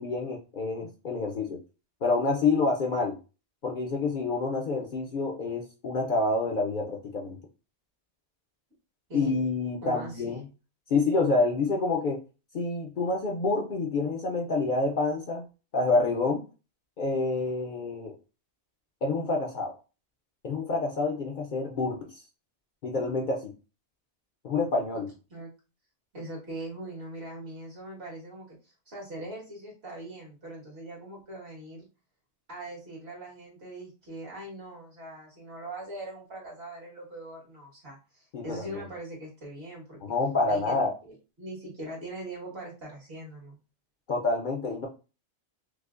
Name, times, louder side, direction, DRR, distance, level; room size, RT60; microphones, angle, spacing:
voice 1, 0.0-1.6 2.0-3.2 3.6-7.4 9.1-10.4 10.9-12.2 12.5-15.5 15.7-16.4 17.0-18.1 19.0-19.7 20.4-22.2 22.8-23.5 24.4-25.1 38.3-38.8 40.0-41.0 44.1-44.9, left 3 dB, 55° left, 2 dB, 0.6 m, -27 dB
voice 2, 9.1-9.4 9.8-10.3 10.9-11.0 25.3-25.5 26.1-31.9 32.5-40.0 40.5-40.8 41.0-43.6, right 1 dB, 65° right, -3 dB, 1.7 m, -41 dB
4.8 x 2.0 x 2.4 m, 0.33 s
omnidirectional pair, 1.1 m